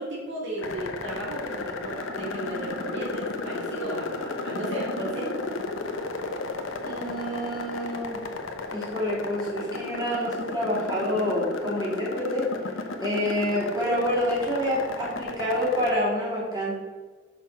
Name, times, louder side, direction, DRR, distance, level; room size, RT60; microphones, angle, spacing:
voice 1, 0.0-5.5, right 1 dB, 60° right, -4 dB, 2.2 m, -34 dB
sound 1, 0.6-16.0, left 3 dB, 85° left, 0.8 m, -34 dB
voice 2, 6.8-8.2 8.7-12.4 13.0-16.7, equal, 20° right, -6 dB, 2.5 m, -27 dB
6.5 x 6.1 x 4.5 m, 1.4 s
head